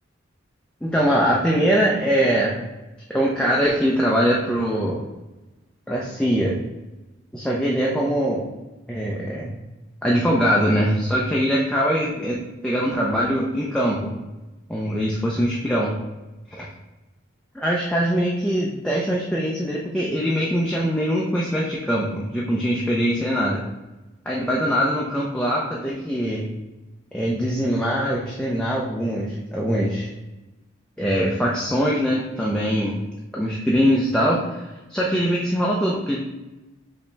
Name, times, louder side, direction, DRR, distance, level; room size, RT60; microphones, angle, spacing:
voice 1, 0.8-2.6 3.1-5.0 5.9-6.5 7.3-8.5 8.9-9.5 10.0-14.1 14.7-15.9 16.5-16.7 17.5-23.6 24.3-26.5 27.1-30.1 31.0-33.1 33.3-36.2, equal, 5° left, -5 dB, 0.5 m, -22 dB
5.3 x 2.8 x 3.3 m, 1.1 s
head